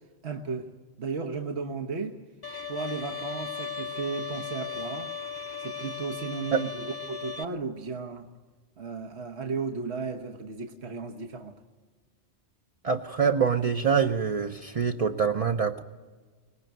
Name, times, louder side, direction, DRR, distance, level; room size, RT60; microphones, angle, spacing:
voice 1, 0.2-0.7 1.0-2.2 2.7-5.1 5.6-8.3 8.8-11.6, right 4 dB, 70° right, 4 dB, 1.5 m, -34 dB
Bowed string instrument, 2.4-7.4, left 5 dB, 25° left, 0.8 m, -37 dB
voice 2, 12.8-15.8, right 6 dB, 35° right, 4 dB, 0.8 m, -25 dB
23.5 x 19.5 x 9.2 m, 1.4 s
omnidirectional pair, 1.1 m